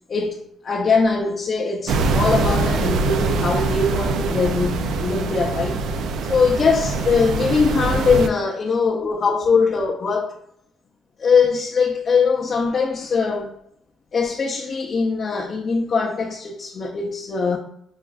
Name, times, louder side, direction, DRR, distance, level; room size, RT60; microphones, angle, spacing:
voice 1, 0.1-5.8 6.2-10.4 11.2-13.5 14.1-17.6, left 5 dB, 45° left, 0.5 m, -21 dB
sound 1, 1.9-8.3, right 3 dB, 75° right, 0.3 m, -23 dB
4.9 x 2.4 x 2.3 m
cardioid pair, 90°, 0 cm